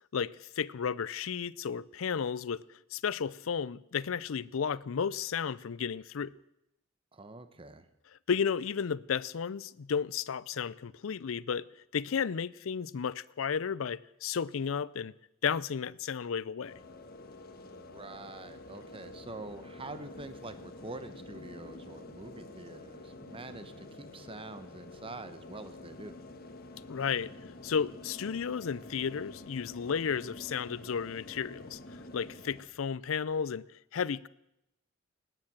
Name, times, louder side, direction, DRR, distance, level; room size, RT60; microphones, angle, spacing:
voice 1, 0.1-2.6 2.9-6.3 8.3-15.1 15.4-16.7 26.9-27.3 27.6-33.7 33.9-34.3, left 6 dB, 75° left, 0.5 m, -33 dB
voice 2, 7.1-7.9 17.7-26.2, right 2 dB, 25° right, 1.0 m, -46 dB
sound 1, 16.6-32.6, left 2 dB, 50° left, 1.5 m, -48 dB
19.0 x 9.2 x 7.3 m
head